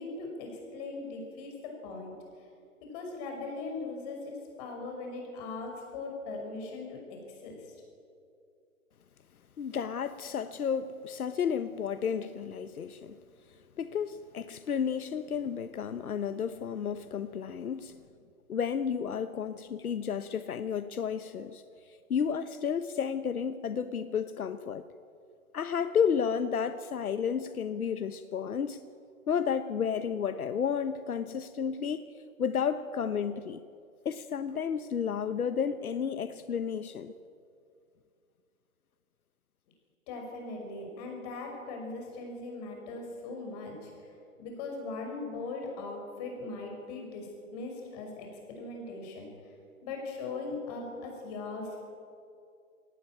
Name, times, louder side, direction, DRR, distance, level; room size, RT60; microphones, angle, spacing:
voice 1, 0.0-2.1 2.9-7.7 40.1-44.1 44.4-49.3 49.8-51.8, left 3 dB, 25° left, 1 dB, 6.0 m, -39 dB
voice 2, 9.6-13.2 13.8-18.0 18.5-21.6 22.1-24.8 25.5-28.8 29.3-32.1 32.4-33.6 34.0-37.1, left 7 dB, 80° left, 11 dB, 1.1 m, -32 dB
21.0 x 18.5 x 8.9 m, 2.4 s
hypercardioid pair, 160°, 43 cm